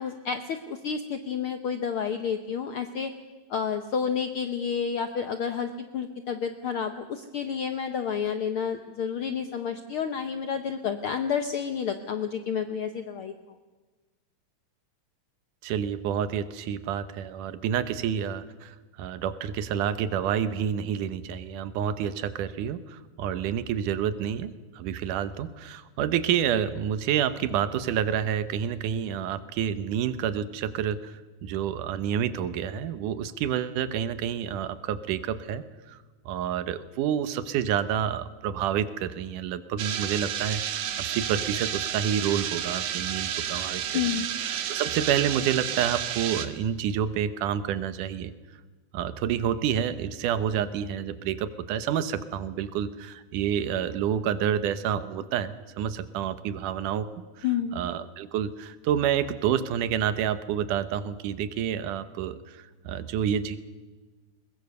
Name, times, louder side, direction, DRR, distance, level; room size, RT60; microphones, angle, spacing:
voice 1, 0.0-3.1 3.5-13.3 43.9-44.3 57.4-57.8, left 7 dB, 70° left, 8 dB, 1.2 m, -30 dB
voice 2, 15.6-36.0 36.3-48.3 48.9-57.1 57.4-57.5 57.7-63.6, right 9 dB, 80° right, 13 dB, 2.6 m, -29 dB
sound 1, 39.8-46.5, right 10 dB, 65° right, 2.3 m, -31 dB
21.0 x 21.0 x 6.8 m, 1.3 s
omnidirectional pair, 3.6 m